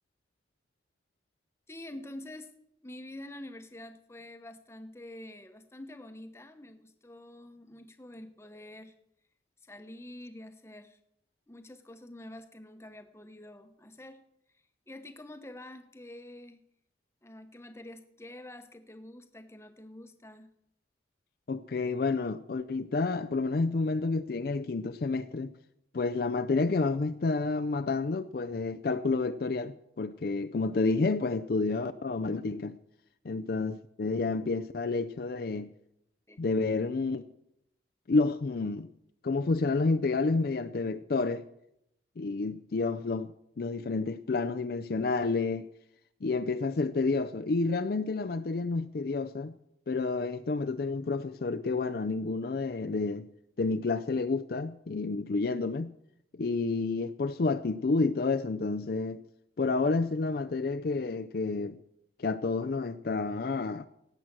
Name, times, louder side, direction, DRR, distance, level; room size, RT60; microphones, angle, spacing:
voice 1, 1.7-2.5 2.8-8.9 9.6-11.0 11.5-14.2 14.9-16.6 17.2-20.5 36.3-36.4, left 1 dB, 15° left, 0.9 m, -47 dB
voice 2, 21.5-25.5 25.9-32.8 33.2-35.7 36.4-37.3 38.1-38.9 39.2-41.4 42.2-43.3 43.6-45.7 46.2-49.5 49.9-53.3 53.6-55.9 56.4-59.2 59.6-61.8 62.2-63.9, left 3 dB, 55° left, 0.4 m, -30 dB
17.5 x 7.8 x 6.0 m
head